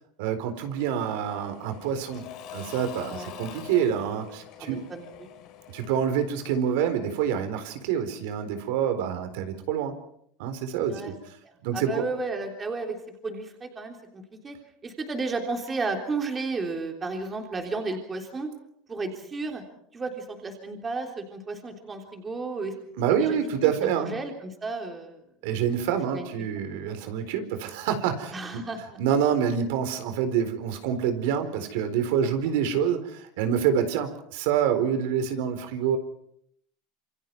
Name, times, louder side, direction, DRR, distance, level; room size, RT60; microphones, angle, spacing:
voice 1, 0.2-4.8 5.7-9.9 10.4-11.1 11.6-12.0 23.0-24.2 25.4-28.6 29.0-36.0, right 8 dB, 70° right, 8 dB, 4.1 m, -27 dB
Engine / Mechanisms / Drill, 0.5-7.2, left 10 dB, 45° left, 4.4 m, -45 dB
voice 2, 4.6-5.1 10.9-11.1 11.7-13.0 13.2-14.6 14.8-18.5 18.9-19.6 19.9-22.7 23.1-25.2 26.1-26.3 28.3-29.0 32.2-32.3, right 3 dB, 15° right, 3 dB, 3.4 m, -33 dB
27.5 x 27.5 x 4.7 m, 0.72 s
cardioid pair, 165°, 0 cm